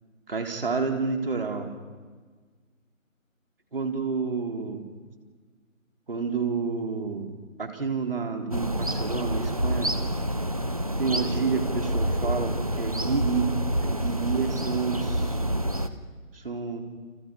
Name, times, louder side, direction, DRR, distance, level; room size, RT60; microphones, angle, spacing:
voice 1, 0.3-1.7 3.7-4.8 6.1-7.3 7.6-9.9 10.9-13.5 13.8-15.4 16.3-16.8, right 5 dB, 40° right, 3 dB, 3.8 m, -29 dB
sound 1, 8.5-15.9, right 1 dB, 25° right, 0.9 m, -28 dB
30.0 x 28.0 x 5.4 m, 1.5 s
figure-of-eight pair, 165°, 41 cm